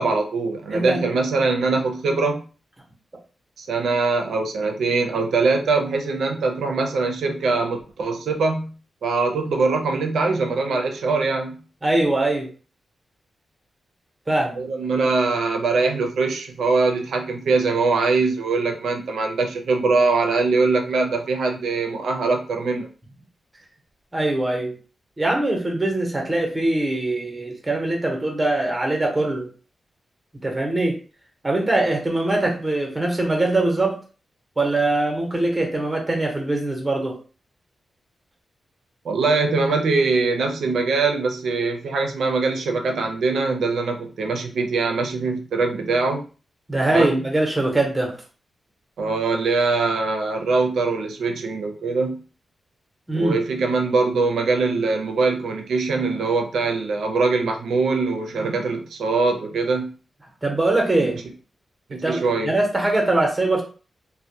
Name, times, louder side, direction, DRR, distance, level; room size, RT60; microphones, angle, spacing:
voice 1, 0.0-2.4 3.6-8.7 9.0-11.5 14.6-22.9 39.0-46.2 46.9-47.1 49.0-52.2 53.1-59.9 61.0-61.1 61.9-62.5, right 3 dB, 85° right, 4 dB, 0.5 m, -22 dB
voice 2, 0.7-1.0 11.8-12.5 14.3-14.6 24.1-24.7 25.2-29.5 30.4-31.0 31.4-34.0 34.6-37.2 46.7-48.2 53.1-53.4 60.4-61.2 61.9-63.6, right 2 dB, 20° right, 1 dB, 0.8 m, -22 dB
2.2 x 2.1 x 2.7 m, 0.37 s
cardioid pair, 90°, 0 cm